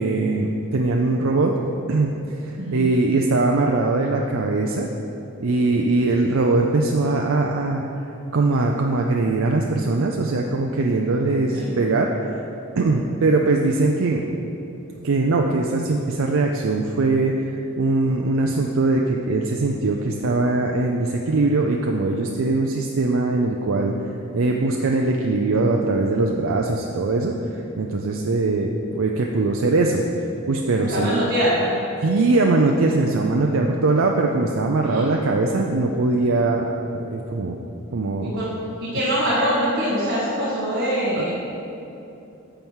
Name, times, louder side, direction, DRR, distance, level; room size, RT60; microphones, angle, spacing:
voice 1, 0.0-1.6 1.9-2.1 2.4-4.9 5.4-7.8 8.3-12.1 12.3-12.4 12.8-14.3 15.0-17.3 17.8-23.9 24.3-27.3 27.8-30.0 30.5-31.3 32.0-37.6 37.9-38.4 41.2-41.3, right 3 dB, 75° right, 1 dB, 0.5 m, -21 dB
voice 2, 2.6-2.9 11.5-11.7 30.8-31.6 34.9-35.2 38.2-38.5 38.8-41.3, equal, 50° right, -10 dB, 1.7 m, -23 dB
8.9 x 4.6 x 7.3 m, 2.9 s
head